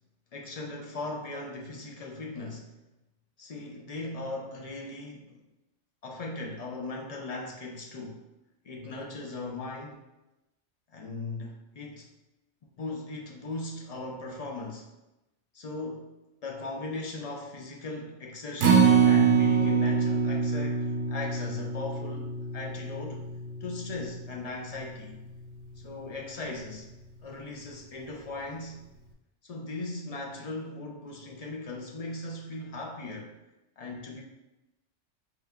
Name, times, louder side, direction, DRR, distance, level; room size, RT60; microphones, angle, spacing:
voice 1, 0.3-2.8 3.4-5.4 6.0-8.2 8.6-10.0 10.9-12.1 12.8-14.9 15.5-16.1 16.4-23.3 23.6-25.2 25.8-26.9 27.2-28.8 29.4-33.4 33.8-34.2, left 2 dB, 65° left, 0 dB, 0.4 m, -38 dB
Acoustic guitar, 18.6-24.9 25.3-25.4 25.8-25.9, right 6 dB, 70° right, 0.9 m, -25 dB
4.4 x 2.2 x 3.5 m, 0.97 s
omnidirectional pair, 1.2 m